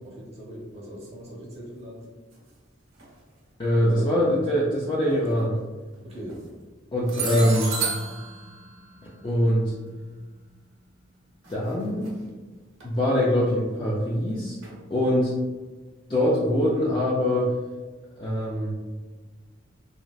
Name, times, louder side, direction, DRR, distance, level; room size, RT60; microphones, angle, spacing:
voice 1, 0.0-2.0 3.8-4.3 6.0-6.4 7.1-7.4, right 1 dB, 30° right, -4 dB, 0.8 m, -39 dB
sound 1, 3.0-3.1 5.1-5.3 6.1-6.5 7.1-10.1 11.4-11.7 12.0-12.1 12.8-12.9 14.6-14.8, right 5 dB, 75° right, 0.8 m, -33 dB
voice 2, 3.6-5.6 6.9-7.7 9.2-9.7 11.5-12.1 12.8-14.6 14.9-15.3 16.1-17.5 18.2-18.7, equal, 25° left, -6 dB, 0.3 m, -23 dB
3.2 x 2.4 x 2.3 m, 1.3 s
head